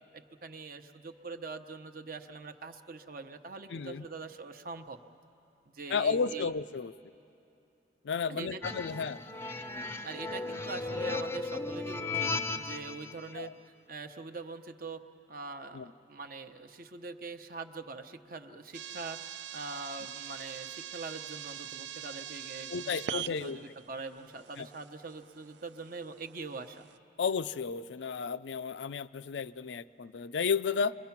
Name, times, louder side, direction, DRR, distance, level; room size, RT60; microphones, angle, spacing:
voice 1, 0.1-5.0 5.7-6.5 8.3-9.0 10.0-13.5 13.9-15.0 15.3-26.9, right 3 dB, 55° right, 7 dB, 0.9 m, -43 dB
voice 2, 3.7-4.1 5.9-6.9 8.0-9.2 13.3-13.5 15.7-15.9 22.7-23.6 24.6-24.7 27.2-31.0, left 5 dB, 75° left, 15 dB, 0.4 m, -32 dB
sound 1, 8.6-13.1, left 3 dB, 15° left, 0.5 m, -36 dB
sound 2, 18.7-27.0, right 9 dB, 75° right, 0.5 m, -43 dB
29.0 x 22.5 x 5.9 m, 2.8 s
head